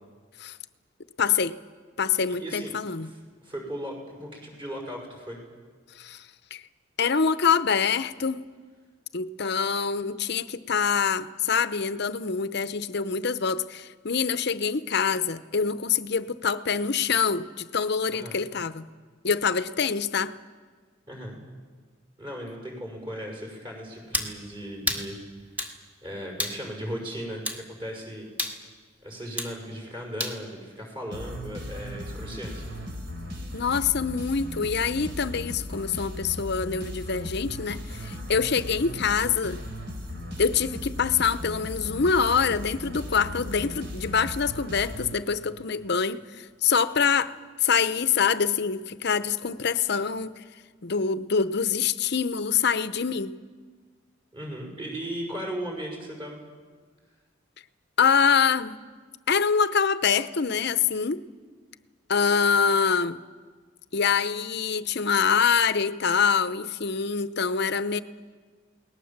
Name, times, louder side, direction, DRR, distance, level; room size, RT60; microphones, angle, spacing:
voice 1, 1.2-1.6 2.0-3.1 6.0-6.2 6.5-6.6 7.0-8.4 9.1-18.9 19.2-20.3 33.5-39.6 40.4-47.3 47.6-50.4 50.8-53.3 58.0-58.8 59.3-61.2 62.1-63.2 63.9-68.0, left 6 dB, 55° left, 13 dB, 0.8 m, -25 dB
voice 2, 2.3-5.4 18.1-18.4 21.1-21.4 22.2-25.2 26.0-28.3 29.0-32.6 54.3-56.4, equal, 25° right, 0 dB, 6.0 m, -37 dB
sound 1, 24.1-24.3 24.9-25.1 25.6-25.8 26.4-26.6 27.5-27.6 28.4-28.6 29.4-29.6 30.2-30.4, left 1 dB, 10° right, 1.9 m, -29 dB
sound 2, 31.1-45.7, left 1 dB, 60° right, 3.7 m, -37 dB
28.5 x 19.5 x 7.4 m, 1.6 s
head